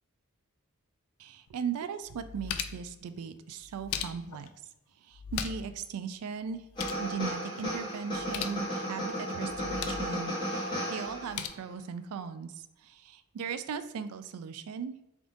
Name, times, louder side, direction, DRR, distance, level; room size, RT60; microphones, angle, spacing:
voice 1, 1.2-4.5 5.0-6.6 7.0-14.9, right 6 dB, 85° right, 11 dB, 0.3 m, -38 dB
sound 1, 1.5-1.6 2.0-2.9 3.6-4.5 5.1-5.8 6.0-6.1 6.5-7.1 8.1-8.6 9.5-10.1 11.0-11.5, left 8 dB, 75° left, 0.3 m, -38 dB
sound 2, 6.8-11.5, equal, 20° left, 1.2 m, -34 dB
3.5 x 2.5 x 3.7 m, 0.91 s
head